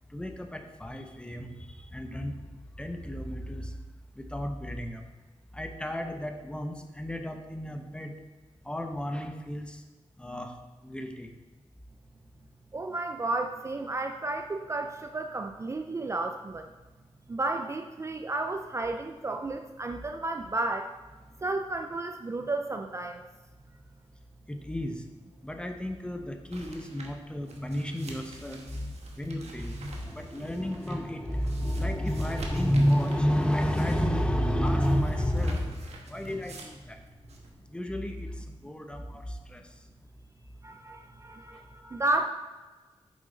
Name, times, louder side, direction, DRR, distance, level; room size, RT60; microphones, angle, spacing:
voice 1, 0.1-2.4 2.8-3.7 4.2-5.0 5.5-8.1 8.6-9.8 10.2-10.6 10.8-11.3 24.5-25.0 25.4-37.0 37.7-39.7, equal, 10° left, 5 dB, 0.8 m, -31 dB
voice 2, 12.7-16.7 17.3-20.9 21.4-23.2 40.6-42.2, right 2 dB, 25° right, 5 dB, 0.4 m, -32 dB
sound 1, 26.5-37.5, right 2 dB, 85° right, 1.4 m, -48 dB
9.1 x 7.5 x 3.9 m, 1.3 s
wide cardioid pair, 140°, 11 cm